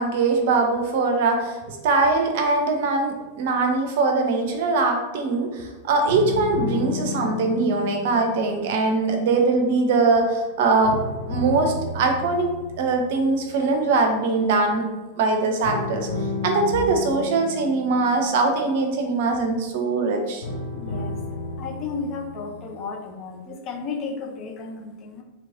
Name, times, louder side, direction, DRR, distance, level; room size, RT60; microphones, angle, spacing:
voice 1, 0.0-11.0 11.3-12.5 12.8-14.8 15.2-16.1 16.4-20.5, right 3 dB, 50° right, 3 dB, 0.6 m, -22 dB
sound 1, 6.1-10.4 10.8-14.1 15.6-19.6 20.4-22.6, left 3 dB, 80° left, 0.7 m, -33 dB
voice 2, 20.7-21.2 21.6-25.2, left 4 dB, 35° left, 3 dB, 0.5 m, -33 dB
3.1 x 3.1 x 2.5 m, 1.1 s
figure-of-eight pair, 90°, 0 cm